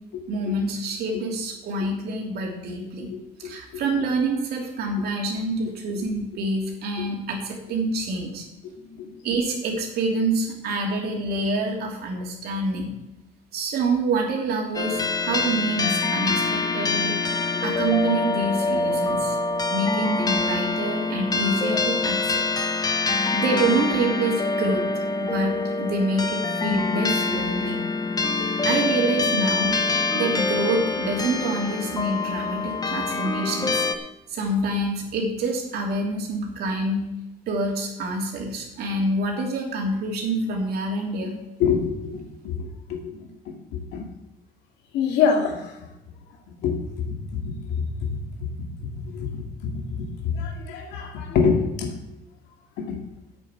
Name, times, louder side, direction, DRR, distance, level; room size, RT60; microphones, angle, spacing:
voice 1, 0.3-3.1 3.4-8.5 9.2-13.0 13.5-17.2 17.6-19.4 19.7-22.4 23.3-24.8 25.2-27.7 28.6-29.7 30.1-33.9 34.3-37.1 37.5-41.4, right 2 dB, 65° right, 1 dB, 3.0 m, -26 dB
voice 2, 3.4-3.8 7.0-7.1 9.0-9.1 41.6-43.2 43.7-44.1 44.9-45.7 46.6-48.2 48.9-49.7 50.0-51.9 52.8-53.0, left 6 dB, 85° left, 3 dB, 2.3 m, -26 dB
sound 1, 14.7-33.9, left 3 dB, 20° left, 1.0 m, -25 dB
8.4 x 7.2 x 8.6 m, 0.93 s
cardioid pair, 110°, 17 cm